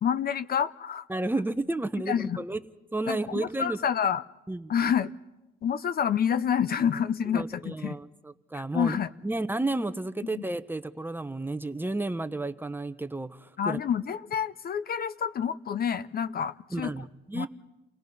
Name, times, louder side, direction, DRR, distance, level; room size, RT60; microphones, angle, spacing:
voice 1, 0.0-1.1 2.1-2.4 3.1-4.2 4.7-5.1 5.6-8.0 8.5-9.1 10.3-10.4 13.6-16.9 17.3-17.5, left 8 dB, 50° left, 14 dB, 0.6 m, -28 dB
voice 2, 1.1-2.6 2.9-3.8 4.5-4.7 7.3-9.0 9.2-13.8 16.7-17.5, right 2 dB, 10° right, 11 dB, 0.9 m, -32 dB
30.0 x 17.5 x 5.4 m, 1.0 s
cardioid pair, 90°, 20 cm